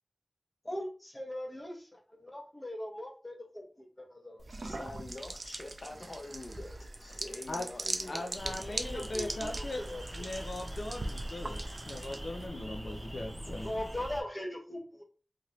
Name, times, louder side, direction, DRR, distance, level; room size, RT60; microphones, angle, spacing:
voice 1, 0.6-4.5 8.7-10.0 13.5-15.0, left 1 dB, 25° left, 0.8 m, -40 dB
sound 1, 4.4-12.5, right 2 dB, 65° right, 0.3 m, -41 dB
voice 2, 4.6-6.7 7.0-8.6, left 2 dB, 60° left, 0.8 m, -45 dB
voice 3, 8.1-9.8 10.2-13.7, left 2 dB, 90° left, 0.4 m, -39 dB
sound 2, 8.3-14.2, right 1 dB, 10° right, 0.8 m, -42 dB
2.8 x 2.5 x 3.0 m
wide cardioid pair, 60°, 0 cm